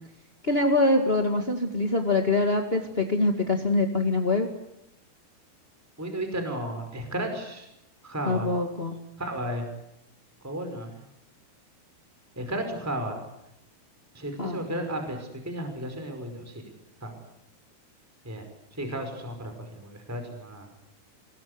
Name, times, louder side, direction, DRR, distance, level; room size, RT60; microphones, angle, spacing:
voice 1, 0.4-4.5 8.2-9.0 14.4-14.6, left 2 dB, 30° left, 4 dB, 1.1 m, -24 dB
voice 2, 6.0-7.7 8.0-8.5 9.2-9.6 10.4-11.0 12.3-13.2 14.1-16.7 17.0-17.1 18.2-18.4 18.7-20.7, right 1 dB, 5° right, 6 dB, 4.9 m, -33 dB
26.0 x 22.0 x 9.6 m, 0.85 s
omnidirectional pair, 4.9 m